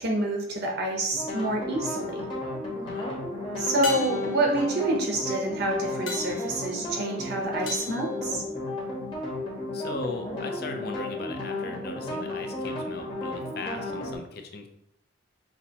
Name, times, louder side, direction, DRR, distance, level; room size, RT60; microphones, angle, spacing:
voice 1, 0.0-2.3 3.6-8.4, right 1 dB, 50° right, 1 dB, 0.7 m, -27 dB
sound 1, 1.1-14.2, left 2 dB, 25° left, 1.2 m, -33 dB
sound 2, 1.7-2.1 3.8-9.0 13.4-13.5, left 3 dB, 75° left, 1.0 m, -40 dB
voice 2, 9.7-14.7, left 3 dB, 50° left, 5 dB, 0.5 m, -38 dB
5.8 x 2.8 x 2.8 m, 0.76 s
head